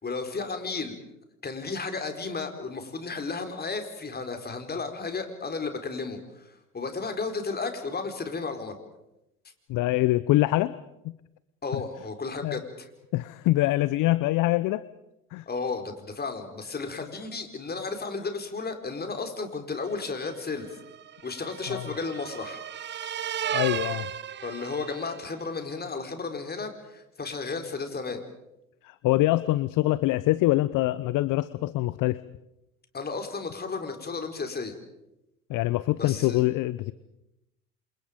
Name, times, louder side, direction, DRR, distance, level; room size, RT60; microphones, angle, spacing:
voice 1, 0.0-1.0 1.4-8.8 11.6-12.9 15.5-20.8 21.2-22.6 24.4-28.2 32.9-34.7 36.0-36.4, left 4 dB, 20° left, 6 dB, 4.5 m, -33 dB
voice 2, 9.7-10.7 12.4-12.6 13.1-14.8 15.3-15.4 21.7-21.9 23.5-24.1 28.8-32.2 35.5-36.9, left 17 dB, 45° left, 17 dB, 0.9 m, -24 dB
sound 1, 20.0-25.4, right 9 dB, 25° right, 0.8 m, -35 dB
29.5 x 27.0 x 5.2 m, 0.88 s
hypercardioid pair, 80°, 44 cm